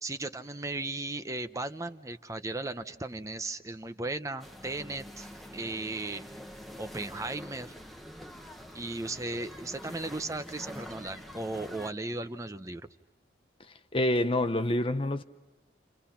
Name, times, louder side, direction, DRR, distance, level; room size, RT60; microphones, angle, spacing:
voice 1, 0.0-6.2 6.8-7.8 8.7-12.8, right 2 dB, 15° right, 0.8 m, -36 dB
sound 1, 4.4-11.9, equal, ahead, 1.2 m, -46 dB
voice 2, 13.9-15.2, left 1 dB, 30° left, 0.8 m, -27 dB
29.5 x 29.5 x 5.8 m
head